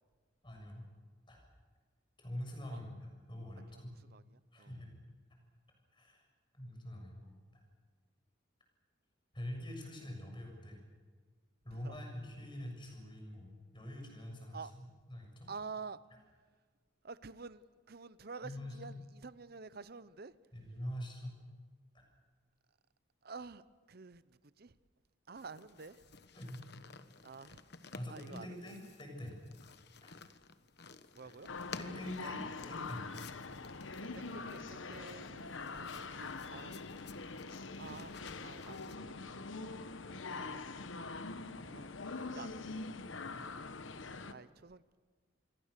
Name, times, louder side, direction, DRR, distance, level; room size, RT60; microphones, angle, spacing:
voice 1, 0.4-0.8 1.3-1.4 2.2-2.9 3.3-3.9 4.5-4.9 5.9-6.2 6.5-7.3 9.3-10.8 11.6-15.5 18.4-18.8 20.5-21.4 26.3-26.6 28.0-29.4 30.0-30.1 31.2-31.3 31.8-33.1 43.3-43.4, left 1 dB, 25° left, 2 dB, 7.0 m, -45 dB
voice 2, 4.1-4.8 11.7-12.0 14.5-14.7 15.5-16.0 17.0-20.3 23.2-23.6 23.9-24.8 25.3-26.1 27.2-27.6 28.1-28.7 31.1-31.5 34.1-35.5 35.7-36.8 37.7-39.1 40.4-40.8 41.6-42.0 42.3-42.9 44.3-45.0, right 4 dB, 50° right, 15 dB, 0.8 m, -49 dB
sound 1, 25.3-39.0, left 4 dB, 55° left, 1.2 m, -55 dB
sound 2, 31.5-44.3, left 3 dB, 75° left, 1.1 m, -44 dB
28.0 x 22.0 x 6.7 m, 1.5 s
head